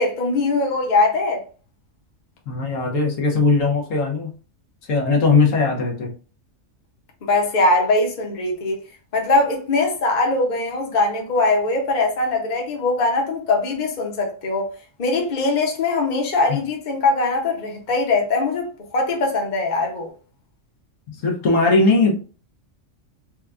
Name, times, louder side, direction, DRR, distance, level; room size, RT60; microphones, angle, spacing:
voice 1, 0.0-1.4 7.2-8.8 9.1-14.7 15.0-20.1, left 2 dB, 40° left, 0.9 m, -21 dB
voice 2, 2.5-4.3 4.9-6.1 16.5-16.6 21.1-22.2, left 3 dB, 75° left, 1.3 m, -19 dB
4.4 x 2.3 x 2.4 m
omnidirectional pair, 1.3 m